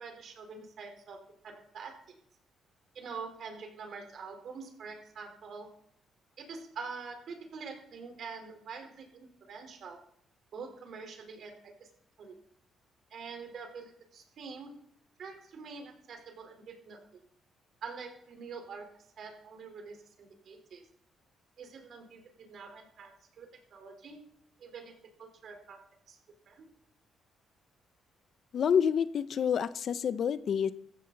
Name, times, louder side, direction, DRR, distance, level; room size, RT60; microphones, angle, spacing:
voice 1, 0.0-2.0 2.9-5.7 6.4-10.0 10.5-11.9 12.2-12.4 13.1-14.7 15.2-17.0 17.8-18.9 19.2-20.8 21.6-24.2 24.6-25.8 26.1-26.2 26.5-26.7, right 5 dB, 65° right, 4 dB, 4.1 m, -45 dB
voice 2, 28.5-30.7, left 7 dB, 60° left, 14 dB, 0.8 m, -28 dB
15.5 x 15.0 x 4.1 m, 0.64 s
cardioid pair, 90°, 0 cm